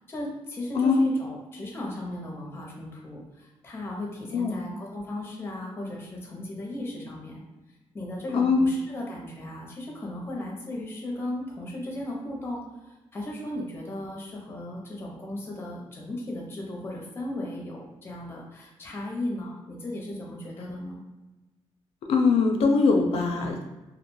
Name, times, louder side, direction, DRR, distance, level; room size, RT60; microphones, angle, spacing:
voice 1, 0.1-7.4 7.9-21.0, left 1 dB, 25° left, -1 dB, 0.5 m, -36 dB
voice 2, 22.1-23.6, left 4 dB, 75° left, 3 dB, 0.4 m, -22 dB
2.3 x 2.2 x 3.0 m, 1.1 s
wide cardioid pair, 170°, 10 cm